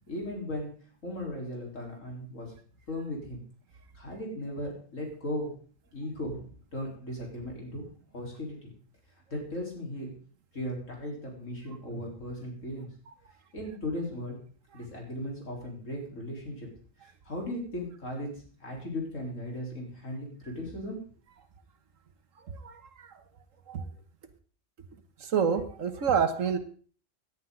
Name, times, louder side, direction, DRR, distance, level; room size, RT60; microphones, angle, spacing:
voice 1, 0.1-0.7 1.0-2.5 2.9-3.4 3.9-5.5 5.9-7.9 8.1-8.7 9.3-10.1 10.5-12.9 13.5-14.4 14.7-16.7 17.0-18.3 18.6-21.0, left 1 dB, 80° left, -1 dB, 4.5 m, -37 dB
voice 2, 22.5-23.1 23.7-23.9 25.2-26.6, right 7 dB, 80° right, 9 dB, 1.6 m, -28 dB
17.5 x 10.5 x 3.9 m, 0.43 s
omnidirectional pair, 1.3 m